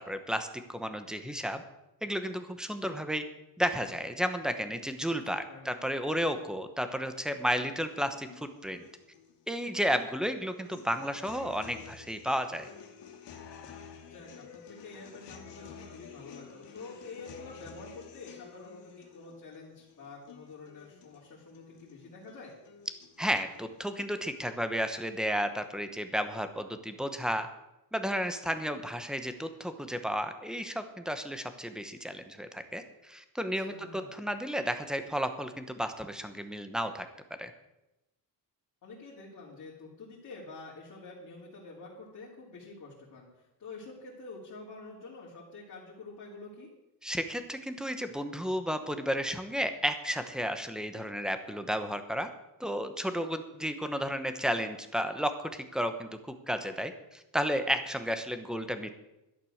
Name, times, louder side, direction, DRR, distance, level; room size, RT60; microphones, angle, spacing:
voice 1, 0.0-1.6 2.0-3.2 3.6-8.8 9.5-12.7 23.2-27.5 27.9-37.1 37.4-37.5 47.0-52.3 52.6-56.1 56.5-59.0, equal, ahead, 9 dB, 1.0 m, -32 dB
voice 2, 5.5-5.8 14.0-22.5 33.5-34.1 38.8-46.7, left 3 dB, 45° left, -5 dB, 3.2 m, -47 dB
sound 1, 7.8-23.8, left 7 dB, 75° left, 2.5 m, -51 dB
12.0 x 10.5 x 6.4 m, 0.93 s
cardioid pair, 165°, 42 cm